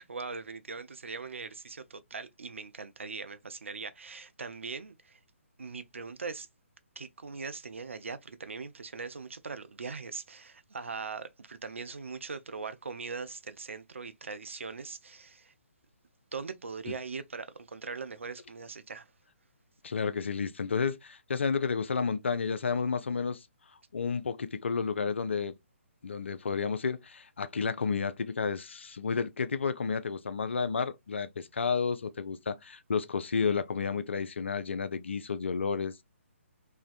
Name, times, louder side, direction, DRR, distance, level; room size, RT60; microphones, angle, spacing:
voice 1, 0.0-5.2 5.6-6.5 7.0-15.5 16.3-19.1, right 4 dB, 65° right, 0.4 m, -41 dB
voice 2, 19.8-23.4 23.9-25.6 26.0-35.9, left 5 dB, 60° left, 0.3 m, -31 dB
2.5 x 2.1 x 2.3 m
figure-of-eight pair, 135°, 7 cm